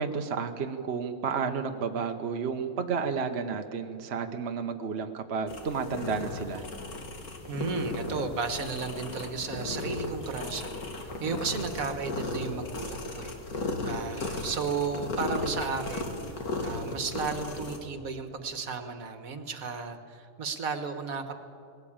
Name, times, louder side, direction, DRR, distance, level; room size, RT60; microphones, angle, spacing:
voice 1, 0.0-6.6, right 5 dB, 50° right, 5 dB, 1.2 m, -31 dB
sound 1, 5.5-17.8, left 2 dB, 85° left, 2.6 m, -35 dB
voice 2, 7.5-16.2 16.6-21.3, right 5 dB, 70° right, 8 dB, 1.8 m, -34 dB
20.5 x 17.0 x 8.8 m, 2.4 s
omnidirectional pair, 1.5 m